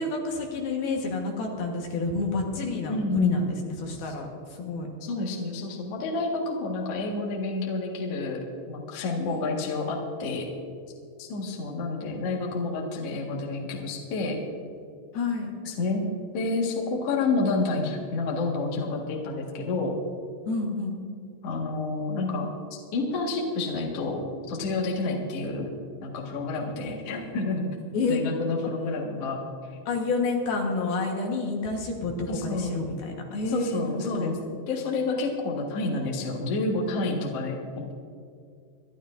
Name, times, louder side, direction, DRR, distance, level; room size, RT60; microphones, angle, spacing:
voice 1, 0.0-4.9 9.2-9.7 15.1-15.5 20.5-21.0 27.9-28.2 29.9-34.4, left 3 dB, 65° left, 1 dB, 3.0 m, -29 dB
voice 2, 2.9-3.5 5.0-10.5 11.2-14.4 15.6-16.0 16.3-19.9 21.4-25.7 26.0-27.7 28.1-29.4 32.3-32.8 33.5-34.4 34.7-37.9, left 3 dB, 50° left, -2 dB, 1.9 m, -29 dB
26.0 x 12.0 x 2.6 m, 2.2 s
omnidirectional pair, 5.0 m